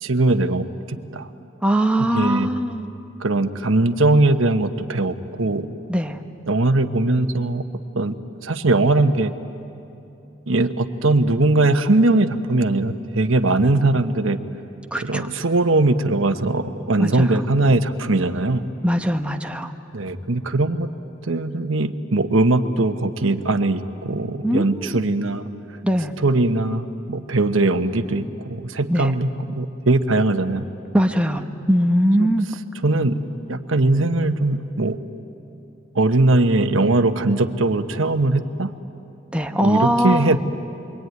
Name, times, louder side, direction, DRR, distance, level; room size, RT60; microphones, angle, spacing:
voice 1, 0.0-1.3 2.1-2.5 3.2-5.7 6.5-7.6 7.9-8.1 8.4-9.3 10.5-14.4 15.1-18.6 19.9-20.9 21.2-25.5 26.2-29.3 29.6-30.6 32.2-32.3 32.8-33.2 33.5-35.0 35.9-38.7 39.6-40.4, right 2 dB, 80° right, 8 dB, 1.2 m, -20 dB
voice 2, 1.6-2.9 5.9-6.2 14.9-15.3 17.0-17.4 18.8-19.7 24.4-25.1 25.8-26.1 28.9-29.1 30.9-32.5 39.3-40.4, equal, 5° right, 5 dB, 1.0 m, -21 dB
27.5 x 23.0 x 9.5 m, 2.9 s
head